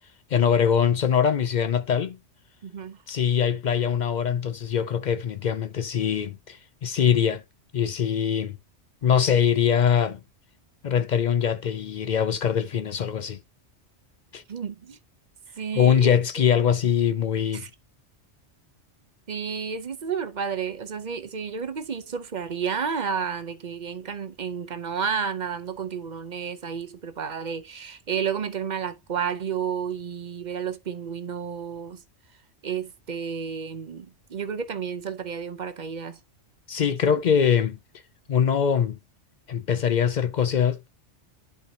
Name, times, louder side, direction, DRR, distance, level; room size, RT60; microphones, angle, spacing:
voice 1, 0.3-2.2 3.1-7.4 7.7-8.6 9.0-10.2 10.8-13.4 14.3-14.4 15.7-17.6 36.7-37.8 38.3-39.0 39.5-40.9, left 8 dB, 60° left, 0.4 m, -23 dB
voice 2, 2.6-3.0 14.5-15.0 15.6-16.1 17.5-17.7 19.3-32.0 32.6-36.2, right 7 dB, 45° right, 0.7 m, -31 dB
10.5 x 4.7 x 2.8 m
omnidirectional pair, 1.2 m